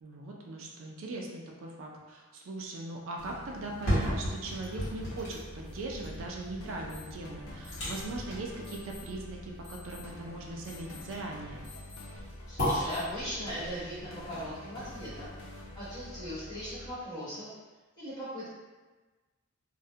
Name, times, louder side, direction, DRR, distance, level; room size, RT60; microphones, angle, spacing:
voice 1, 0.0-11.6, right 2 dB, 65° right, 0 dB, 0.3 m, -40 dB
sound 1, 3.2-16.9, left 1 dB, 80° left, 0.4 m, -47 dB
sound 2, 3.6-15.6 16.0-16.1, equal, 60° left, 1.0 m, -37 dB
sound 3, 6.9-7.0 7.6-8.0 8.6-9.0 9.6-10.0 10.6-11.0 11.6-12.0 12.6-13.0, left 6 dB, ahead, 0.6 m, -50 dB
voice 2, 12.5-15.4 15.7-17.5 18.0-18.5, equal, 20° left, -12 dB, 1.0 m, -39 dB
2.3 x 2.0 x 2.6 m, 1.2 s
head